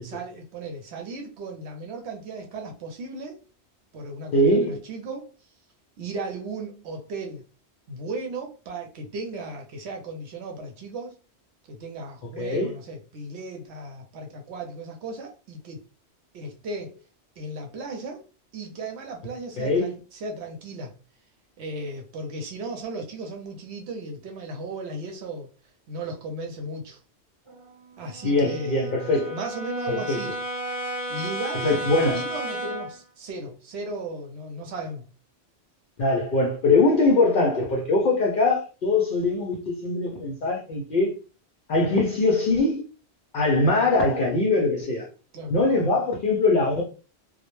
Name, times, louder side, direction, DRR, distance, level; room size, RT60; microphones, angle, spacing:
voice 1, 0.0-3.4 3.9-5.3 6.0-7.4 7.9-11.2 11.7-15.8 16.3-17.0 17.4-18.2 18.5-20.9 21.6-25.5 25.9-27.0 28.0-28.9 29.3-30.3 31.1-35.1 45.3-45.5, right 2 dB, 75° right, 0.8 m, -36 dB
voice 2, 4.3-4.8 12.4-12.7 19.6-19.9 28.2-29.3 29.9-30.2 31.6-32.2 36.0-41.1 41.7-42.8 43.3-45.1 45.5-46.8, left 2 dB, 60° left, 0.6 m, -22 dB
Brass instrument, 27.5-33.0, equal, 30° right, 0.8 m, -33 dB
2.1 x 2.0 x 3.0 m
omnidirectional pair, 1.1 m